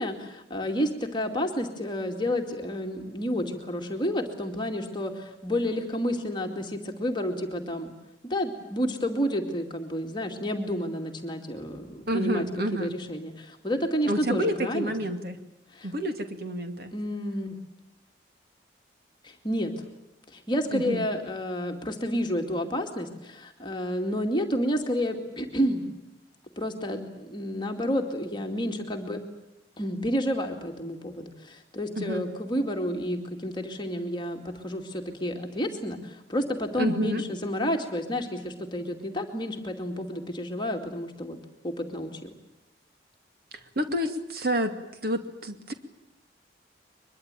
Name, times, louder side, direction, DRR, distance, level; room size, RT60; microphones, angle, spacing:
voice 1, 0.0-7.9 8.2-12.4 12.8-14.9 15.7-15.9 16.9-17.5 19.2-19.8 20.3-25.8 26.6-29.2 29.8-41.4 41.6-42.3, equal, 25° left, 3 dB, 2.3 m, -30 dB
voice 2, 12.1-13.0 14.0-15.4 15.8-16.9 20.7-21.1 32.0-32.3 36.8-37.2 43.5-44.8 45.0-45.7, equal, 55° right, 7 dB, 2.4 m, -29 dB
23.0 x 22.5 x 9.1 m, 0.88 s
head